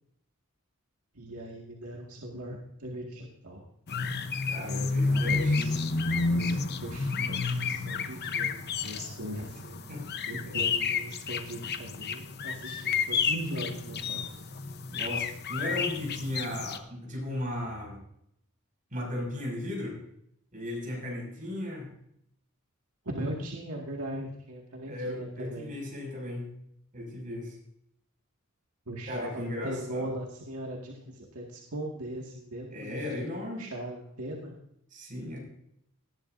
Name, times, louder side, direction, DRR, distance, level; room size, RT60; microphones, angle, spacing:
voice 1, 1.1-3.6 4.6-5.8 6.1-9.8 10.3-14.2 23.1-25.8 28.9-33.0 33.6-34.5, right 1 dB, 80° right, -1 dB, 2.0 m, -39 dB
sound 1, 3.9-16.8, left 4 dB, 50° left, 0.9 m, -31 dB
voice 2, 4.5-5.8 9.9-10.1 10.5-10.6 14.9-18.0 18.9-20.0 20.5-21.9 24.8-26.5 26.9-27.6 29.1-30.1 32.7-33.6 34.9-35.4, left 1 dB, 40° right, -1 dB, 6.1 m, -36 dB
19.0 x 11.0 x 2.6 m, 0.74 s
head